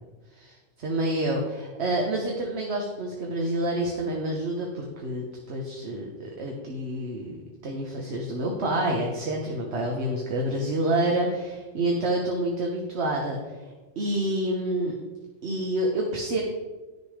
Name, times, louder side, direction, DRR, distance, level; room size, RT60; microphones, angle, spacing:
voice 1, 0.3-6.1 6.4-7.4 7.6-13.4 14.0-14.9 15.4-16.4, right 1 dB, 55° right, 0 dB, 1.3 m, -28 dB
9.8 x 6.8 x 4.9 m, 1.3 s
omnidirectional pair, 1.4 m